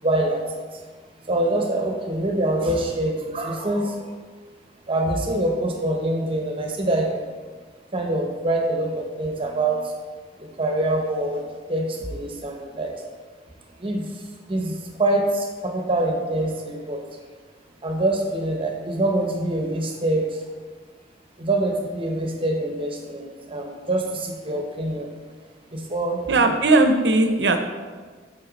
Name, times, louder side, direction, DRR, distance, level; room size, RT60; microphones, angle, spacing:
voice 1, 0.0-0.4 1.3-4.0 4.9-7.2 7.9-9.8 10.6-11.4 11.7-12.9 13.8-14.1 14.5-17.0 17.8-20.4 21.4-25.1 25.7-26.5, right 1 dB, 30° right, 2 dB, 1.0 m, -25 dB
voice 2, 26.3-27.7, right 2 dB, 75° right, 7 dB, 0.7 m, -18 dB
7.4 x 5.6 x 4.0 m, 1.5 s
head